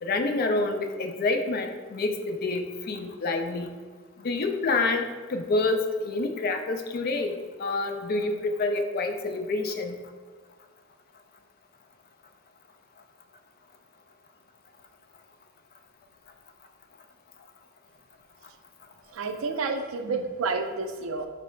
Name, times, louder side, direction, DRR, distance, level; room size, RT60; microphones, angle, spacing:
voice 1, 0.0-3.7 4.2-10.0, left 3 dB, 45° left, 6 dB, 0.3 m, -28 dB
voice 2, 19.1-21.3, right 4 dB, 75° right, 6 dB, 0.4 m, -30 dB
4.6 x 2.0 x 4.2 m, 1.5 s
head